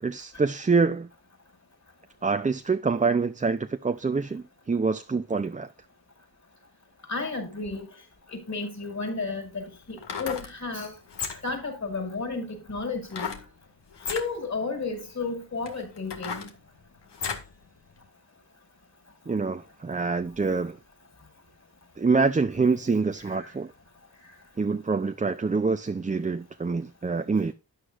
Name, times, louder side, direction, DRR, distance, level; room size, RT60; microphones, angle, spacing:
voice 1, 0.0-1.1 2.2-5.7 19.3-20.8 22.0-23.7 24.6-27.5, right 4 dB, 20° right, 0.5 m, -26 dB
voice 2, 7.1-7.9 8.3-10.9 11.4-13.3 14.1-16.5 23.3-23.5, left 3 dB, 40° left, 5.7 m, -32 dB
sound 1, 8.8-8.9 9.9-10.5 11.1-11.6 13.1-13.5 13.9-14.3 15.0-15.1 15.6-17.5 18.0-18.1, left 6 dB, 75° left, 1.9 m, -34 dB
12.5 x 9.6 x 2.5 m
cardioid pair, 70°, 42 cm